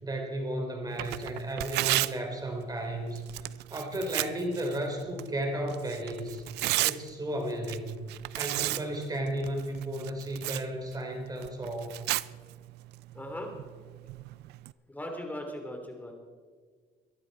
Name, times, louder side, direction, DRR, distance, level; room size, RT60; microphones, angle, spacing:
voice 1, 0.0-3.3 3.7-6.4 6.8-7.9 8.4-12.0, right 1 dB, 20° right, 3 dB, 3.5 m, -34 dB
Tearing, 0.9-14.7, right 18 dB, 80° right, 0.4 m, -36 dB
voice 2, 13.1-13.5 14.9-16.1, left 1 dB, 10° left, 2 dB, 3.3 m, -39 dB
23.0 x 11.5 x 4.2 m, 1.6 s
cardioid pair, 110°, 17 cm